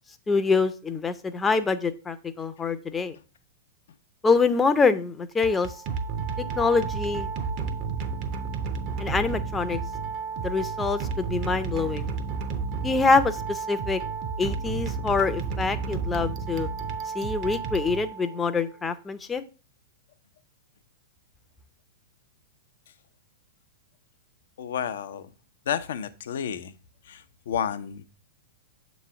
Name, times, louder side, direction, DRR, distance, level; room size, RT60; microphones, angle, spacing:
voice 1, 0.3-3.2 4.2-5.7 6.4-7.3 9.0-9.8 10.4-12.1 12.8-14.0 14.4-16.7 17.1-19.4, left 4 dB, 15° left, 10 dB, 0.6 m, -25 dB
sound 1, 5.3-18.5, right 5 dB, 45° right, 0.8 m, -31 dB
voice 2, 24.6-25.2 25.7-26.7 27.1-28.0, left 8 dB, 65° left, 11 dB, 0.6 m, -31 dB
7.3 x 3.1 x 5.7 m, 0.34 s
figure-of-eight pair, 100°, 0 cm